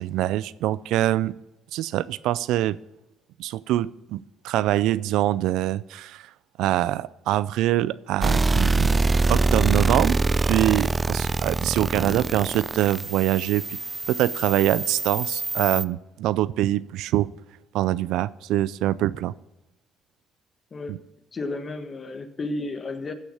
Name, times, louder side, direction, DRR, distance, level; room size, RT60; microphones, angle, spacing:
voice 1, 0.0-1.3 1.7-2.8 3.4-6.3 6.6-9.0 9.3-13.8 14.1-17.3 17.7-19.3 20.9-21.0, right 14 dB, 80° right, 19 dB, 0.4 m, -24 dB
sound 1, 8.2-15.8, right 3 dB, 25° right, 0.4 m, -24 dB
voice 2, 21.3-23.1, left 2 dB, 40° left, 9 dB, 1.5 m, -33 dB
15.0 x 6.3 x 5.8 m, 0.94 s
supercardioid pair, 75°, 0 cm